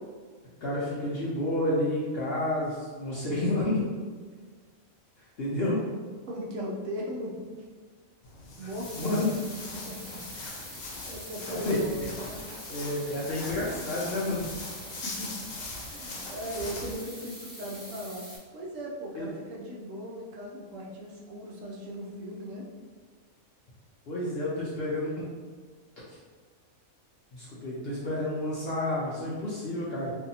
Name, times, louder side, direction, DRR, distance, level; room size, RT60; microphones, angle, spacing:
voice 1, 0.6-3.8 5.4-5.8 8.6-9.3 10.3-10.5 11.5-11.8 12.7-14.5 19.2-19.3 24.1-25.2 27.3-30.1, left 1 dB, 65° left, -7 dB, 0.6 m, -30 dB
voice 2, 6.3-7.6 8.6-10.2 11.0-12.4 15.0-15.4 15.9-22.7, equal, 70° right, -3 dB, 0.9 m, -38 dB
Walk footsteps, 8.2-17.0, left 3 dB, 80° left, 1.0 m, -42 dB
sound 1, 8.8-18.4, equal, 15° left, 1.0 m, -44 dB
2.6 x 2.6 x 2.7 m, 1.5 s
omnidirectional pair, 1.4 m